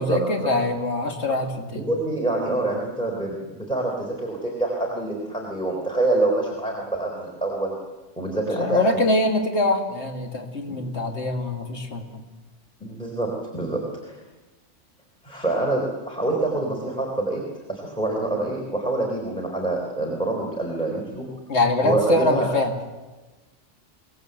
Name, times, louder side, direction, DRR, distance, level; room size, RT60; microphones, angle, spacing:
voice 1, 0.0-1.9 8.6-12.2 21.5-22.7, left 2 dB, 65° left, 3 dB, 2.3 m, -23 dB
voice 2, 1.7-7.7 8.2-8.8 10.7-10.8 12.8-14.2 15.2-17.4 17.7-21.3 21.8-22.5, right 2 dB, 5° left, -1 dB, 3.8 m, -26 dB
24.5 x 18.5 x 7.8 m, 1.2 s
omnidirectional pair, 1.2 m